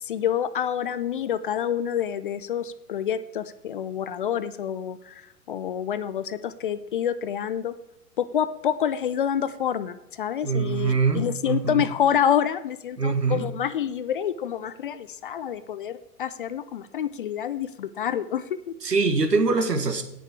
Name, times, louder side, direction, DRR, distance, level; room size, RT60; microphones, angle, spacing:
voice 1, 0.0-7.7 8.2-18.7, left 9 dB, 35° left, 15 dB, 0.5 m, -27 dB
voice 2, 10.4-11.8 13.0-13.4 18.8-20.0, right 4 dB, 80° right, 8 dB, 1.7 m, -23 dB
17.0 x 6.9 x 4.8 m, 0.86 s
figure-of-eight pair, 105°, 47 cm